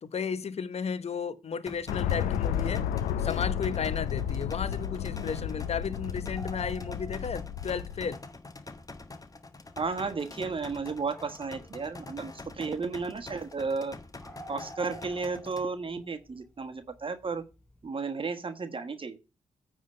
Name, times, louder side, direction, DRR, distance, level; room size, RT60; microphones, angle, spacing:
voice 1, 0.0-2.9 3.2-8.2, left 6 dB, 50° left, 0.9 m, -34 dB
sound 1, 1.7-15.7, left 3 dB, 25° left, 1.3 m, -46 dB
sound 2, 1.9-8.1, left 9 dB, 90° left, 0.5 m, -32 dB
sound 3, 6.3-8.0 8.3-8.4 8.9-9.0 9.7-9.8 10.9-12.0 12.3-12.6 12.9-13.0 13.4-13.5 13.7-13.8 14.2-17.2 17.5-17.8, right 1 dB, 10° left, 3.3 m, -48 dB
voice 2, 9.8-13.9 14.5-17.4 17.8-19.2, right 4 dB, 40° right, 1.2 m, -33 dB
9.3 x 3.7 x 6.4 m
supercardioid pair, 55°, 13 cm